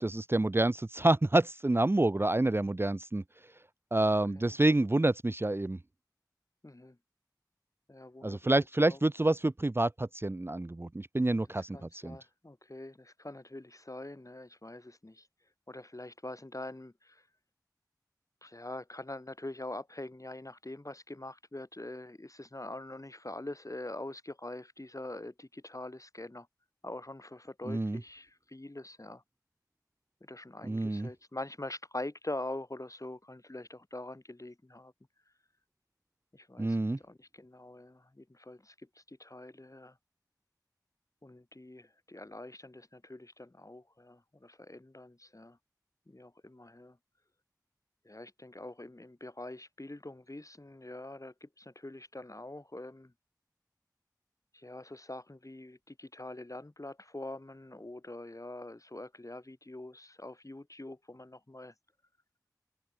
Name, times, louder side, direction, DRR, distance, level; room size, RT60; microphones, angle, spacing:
voice 1, 0.0-3.2 3.9-5.8 8.2-12.2 27.7-28.0 30.7-31.1 36.6-37.0, right 2 dB, 35° right, 0.4 m, -28 dB
voice 2, 6.6-7.0 7.9-8.5 8.8-9.0 11.5-15.3 15.7-17.3 18.4-26.5 26.8-29.2 30.2-34.9 36.3-40.0 41.2-45.6 46.1-47.0 48.0-53.1 54.5-61.7, left 2 dB, 50° left, 2.8 m, -44 dB
open air
wide cardioid pair, 40°, 7 cm